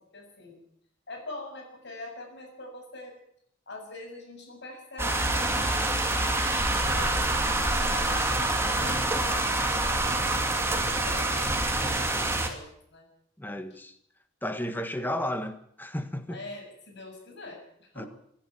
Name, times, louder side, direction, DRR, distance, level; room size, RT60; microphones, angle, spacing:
voice 1, 0.1-0.6 1.1-3.1 3.7-6.4 6.8-13.1 16.3-17.6 17.9-18.1, left 2 dB, 55° left, 7.5 m, -43 dB
sound 1, 5.0-12.5, right 2 dB, 10° right, 2.8 m, -26 dB
voice 2, 13.4-13.9 14.4-16.4 18.0-18.1, left 1 dB, 10° left, 1.6 m, -33 dB
26.5 x 11.5 x 9.2 m
head